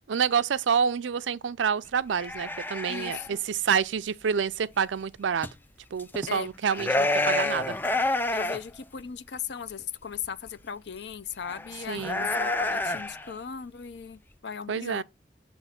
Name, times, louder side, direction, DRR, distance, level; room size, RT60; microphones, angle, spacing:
voice 1, 0.1-5.5 5.9-7.8 11.9-12.3 14.7-15.0, right 7 dB, 90° right, 0.4 m, -28 dB
sound 1, 2.1-3.3 5.4-5.5 6.0-6.3 6.6-8.6 9.0-9.1 10.2-10.3 11.4-13.3, left 2 dB, 10° left, 0.3 m, -28 dB
voice 2, 2.9-3.4 6.3-6.5 8.3-15.0, left 7 dB, 65° left, 0.5 m, -38 dB
7.1 x 3.1 x 5.7 m
head